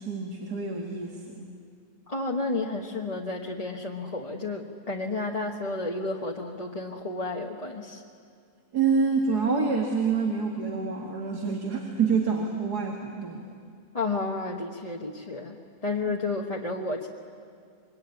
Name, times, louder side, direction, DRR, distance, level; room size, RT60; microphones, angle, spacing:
voice 1, 0.0-1.4 8.7-13.5, right 5 dB, 90° right, 1 dB, 2.5 m, -27 dB
voice 2, 2.1-8.0 13.9-15.6 15.8-17.1, left 3 dB, 25° left, -1 dB, 1.2 m, -31 dB
26.5 x 23.0 x 9.7 m, 2.2 s
omnidirectional pair, 1.6 m